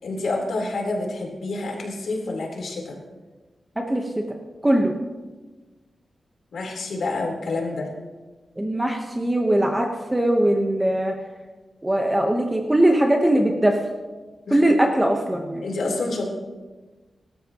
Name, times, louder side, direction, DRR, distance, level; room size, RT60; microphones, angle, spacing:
voice 1, 0.0-3.0 6.5-7.9 14.5-14.6 15.6-16.3, left 2 dB, 80° left, -1 dB, 3.8 m, -28 dB
voice 2, 3.8-4.1 4.6-4.9 8.6-11.1 11.8-13.8 14.5-15.6, right 1 dB, 10° right, 2 dB, 1.0 m, -20 dB
25.0 x 13.0 x 3.0 m, 1.3 s
wide cardioid pair, 165°, 0 cm